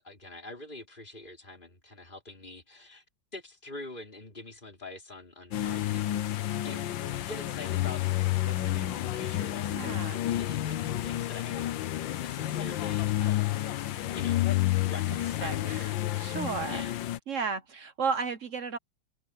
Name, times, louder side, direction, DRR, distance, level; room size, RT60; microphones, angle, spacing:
voice 1, 0.0-3.0 3.3-6.3 6.6-6.9 7.2-8.0 8.4-10.8 11.0-13.6 14.1-15.8 16.7-17.0, left 2 dB, 25° left, 4.5 m, -45 dB
sound 1, 5.5-17.2, left 14 dB, 80° left, 1.6 m, -30 dB
voice 2, 9.7-10.2 15.4-16.8 17.3-18.8, right 5 dB, 50° right, 1.2 m, -33 dB
omnidirectional pair, 2.1 m